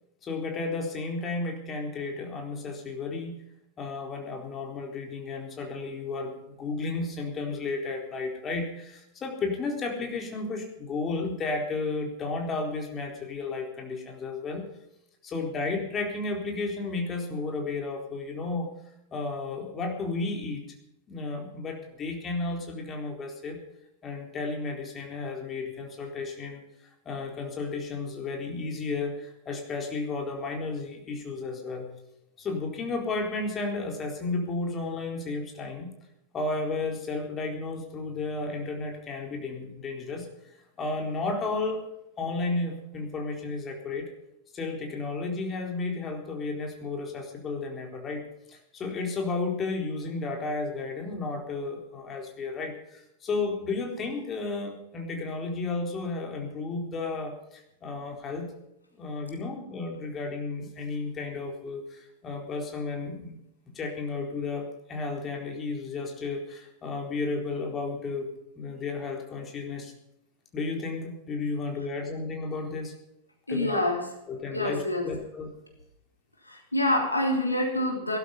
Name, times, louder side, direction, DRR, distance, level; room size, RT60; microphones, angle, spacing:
voice 1, 0.2-3.4 3.8-14.6 15.2-18.7 19.1-20.7 21.1-23.6 24.0-26.6 27.1-31.9 32.4-35.9 36.3-40.3 40.5-41.8 42.2-44.1 44.5-48.2 48.5-58.5 58.9-63.4 63.7-69.9 70.5-72.9 73.5-73.8 74.3-75.5, left 3 dB, 25° left, 2 dB, 4.1 m, -33 dB
voice 2, 73.5-74.0 74.5-75.1 76.4-78.2, left 1 dB, 85° left, 2 dB, 3.3 m, -26 dB
18.5 x 12.5 x 5.6 m, 0.83 s
figure-of-eight pair, 90°, 0 cm